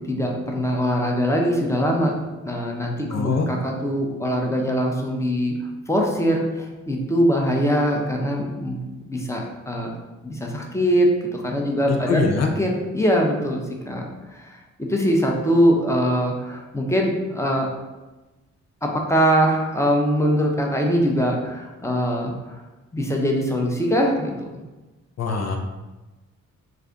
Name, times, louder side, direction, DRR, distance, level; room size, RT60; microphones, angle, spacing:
voice 1, 0.0-2.1 2.4-5.5 5.9-9.9 10.2-14.1 14.3-17.7 18.8-22.6 22.9-24.5, equal, 10° left, 0 dB, 0.8 m, -22 dB
voice 2, 3.1-3.5 11.9-12.5 25.2-25.6, left 4 dB, 50° left, 3 dB, 0.7 m, -23 dB
3.2 x 2.4 x 3.8 m, 1.1 s
supercardioid pair, 45°, 34 cm